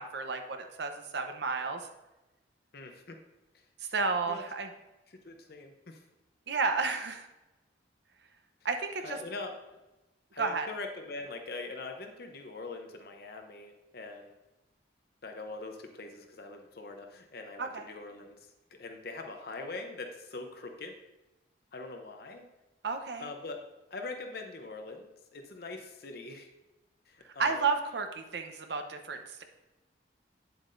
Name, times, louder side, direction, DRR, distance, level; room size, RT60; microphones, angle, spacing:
voice 1, 0.0-1.9 3.9-4.7 6.5-7.3 8.6-9.2 10.4-10.7 17.6-17.8 22.8-23.3 27.4-29.4, right 4 dB, 65° right, 6 dB, 0.8 m, -32 dB
voice 2, 2.7-3.2 3.5-3.6 4.3-4.4 5.1-6.0 9.0-9.6 10.3-14.4 15.2-21.0 21.7-22.5 23.2-23.6 23.9-26.5 27.1-27.6, left 3 dB, 55° left, 4 dB, 0.7 m, -43 dB
8.4 x 7.8 x 2.6 m, 1.0 s
head